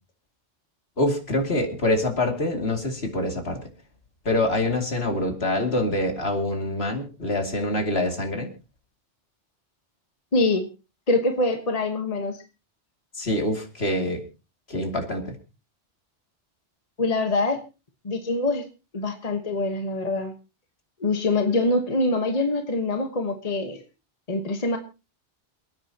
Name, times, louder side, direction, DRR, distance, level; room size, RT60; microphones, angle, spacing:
voice 1, 1.0-3.6 4.2-8.5 13.2-14.2 14.7-15.4, left 1 dB, 60° left, 3 dB, 2.8 m, -25 dB
voice 2, 10.3-10.7 11.1-12.4 17.0-17.6 18.0-18.6 18.9-20.3 21.0-23.8 24.3-24.8, left 2 dB, 35° left, 5 dB, 1.3 m, -24 dB
28.0 x 9.6 x 2.9 m, 0.31 s
omnidirectional pair, 1.2 m